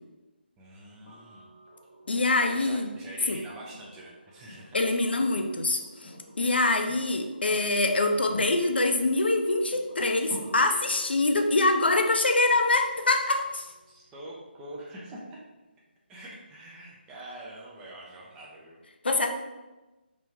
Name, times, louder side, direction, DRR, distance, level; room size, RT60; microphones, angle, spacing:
voice 1, 0.6-1.5 2.4-4.8 13.9-15.4 16.1-18.8, right 1 dB, 10° right, -4 dB, 0.4 m, -45 dB
sound 1, 1.1-15.0 16.7-16.8, equal, 30° left, 0.9 m, -49 dB
voice 2, 2.1-2.9 3.3-3.4 4.7-6.1 6.4-13.7 19.0-19.3, left 2 dB, 70° left, 5 dB, 0.4 m, -24 dB
3.0 x 2.5 x 3.3 m, 1.1 s
figure-of-eight pair, 150°, 6 cm